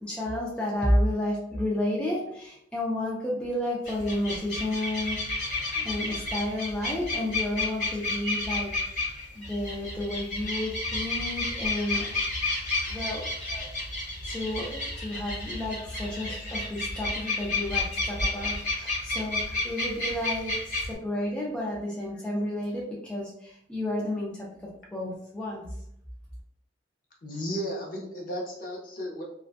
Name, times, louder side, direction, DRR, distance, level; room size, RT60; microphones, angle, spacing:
voice 1, 0.0-12.1 12.9-13.2 14.2-24.5 24.9-25.7, left 1 dB, 5° left, -5 dB, 0.4 m, -31 dB
sound 1, 3.8-20.9, left 2 dB, 65° left, 1.2 m, -31 dB
voice 2, 27.2-29.2, equal, 50° left, -2 dB, 0.6 m, -34 dB
2.6 x 2.1 x 2.4 m, 0.74 s
head